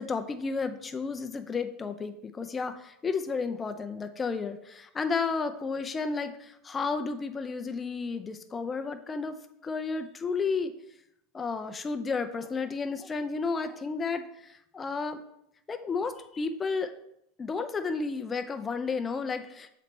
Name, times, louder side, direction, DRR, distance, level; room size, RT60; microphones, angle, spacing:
voice 1, 0.0-9.4 9.6-10.7 11.3-14.2 14.7-15.2 15.7-16.9 17.4-19.7, left 4 dB, 15° left, 9 dB, 0.5 m, -32 dB
6.8 x 4.1 x 4.4 m, 0.77 s
supercardioid pair, 155°, 0 cm